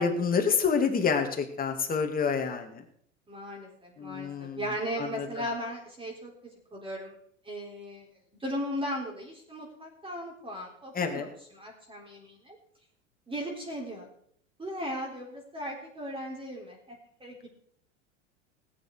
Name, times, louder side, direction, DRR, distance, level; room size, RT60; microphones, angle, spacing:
voice 1, 0.0-2.8 4.0-4.6 5.0-5.5 10.9-11.3, left 5 dB, 25° left, 4 dB, 2.5 m, -28 dB
voice 2, 3.3-6.3 6.7-7.2 7.4-8.1 8.4-12.6 13.3-14.0 14.6-17.5, equal, 15° right, -1 dB, 3.7 m, -37 dB
18.5 x 8.9 x 4.7 m, 0.65 s
hypercardioid pair, 90°, 36 cm